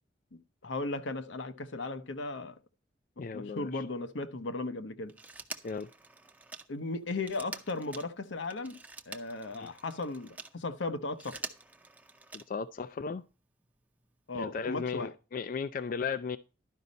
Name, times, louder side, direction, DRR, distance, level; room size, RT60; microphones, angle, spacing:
voice 1, 0.6-2.6 3.3-5.1 6.7-8.8 9.1-11.4 14.3-15.1, left 3 dB, 85° left, 0.9 m, -36 dB
voice 2, 3.2-3.8 5.6-5.9 9.5-9.7 12.3-13.3 14.3-16.4, left 5 dB, 45° left, 0.3 m, -36 dB
Telephone, 5.1-10.6 11.0-12.7 14.0-14.1, right 3 dB, 10° right, 0.6 m, -46 dB
11.5 x 5.3 x 4.0 m
head